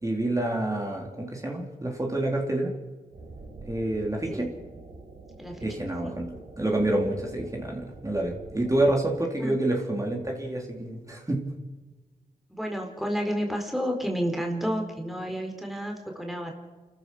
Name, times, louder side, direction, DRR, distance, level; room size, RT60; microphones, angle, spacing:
voice 1, 0.0-2.7 3.7-4.5 5.6-11.4, right 1 dB, 20° right, 0 dB, 3.9 m, -28 dB
sound 1, 3.1-9.0, right 3 dB, 80° right, 5.7 m, -46 dB
voice 2, 12.5-16.5, equal, ahead, 2 dB, 4.0 m, -31 dB
28.5 x 14.0 x 6.4 m, 1.3 s
cardioid pair, 55°, 16 cm